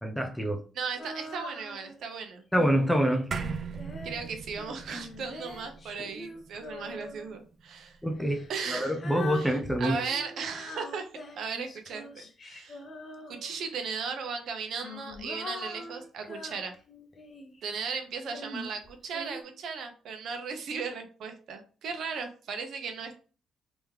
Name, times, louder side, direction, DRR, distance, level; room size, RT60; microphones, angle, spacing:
voice 1, 0.0-0.6 2.5-3.3 6.0-6.1 8.0-10.0, equal, 5° left, 0.7 m, -26 dB
voice 2, 0.7-2.4 4.0-8.0 8.5-8.9 9.3-11.1 11.4-12.8 13.3-16.7 17.6-23.2, right 5 dB, 70° right, 0.9 m, -36 dB
Female singing, 1.0-2.0 2.6-7.4 8.2-13.7 14.5-17.6 18.3-19.4, left 2 dB, 40° left, 0.8 m, -43 dB
sound 1, 3.3-7.9, right 5 dB, 50° right, 0.5 m, -39 dB
3.5 x 3.1 x 3.3 m
cardioid pair, 90°, 0 cm